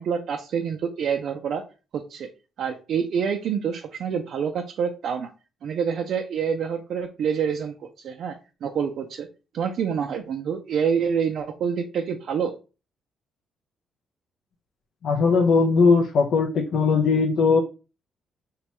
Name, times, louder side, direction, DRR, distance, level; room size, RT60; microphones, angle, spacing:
voice 1, 0.0-1.6 1.9-2.3 2.6-5.3 5.6-9.3 9.5-12.5, right 7 dB, 65° right, 3 dB, 0.3 m, -27 dB
voice 2, 15.0-17.6, left 4 dB, 70° left, 2 dB, 0.4 m, -19 dB
3.1 x 2.2 x 2.9 m, 0.32 s
cardioid pair, 90°, 0 cm